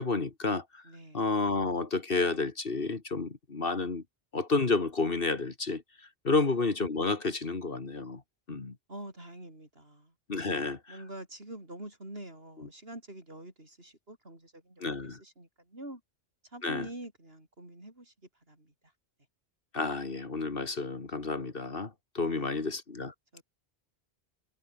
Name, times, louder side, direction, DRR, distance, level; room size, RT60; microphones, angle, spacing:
voice 1, 0.0-0.6 1.1-4.0 4.3-5.8 6.2-8.2 8.5-8.7 10.3-10.8 14.8-15.2 16.6-16.9 19.7-23.1, left 3 dB, 55° left, 2.2 m, -30 dB
voice 2, 0.8-1.2 6.3-6.5 8.9-10.1 10.4-10.6 10.9-16.0 16.4-18.1 18.5-18.7 22.2-22.7 23.3-23.4, right 1 dB, 60° right, 7.3 m, -46 dB
omnidirectional pair, 1.1 m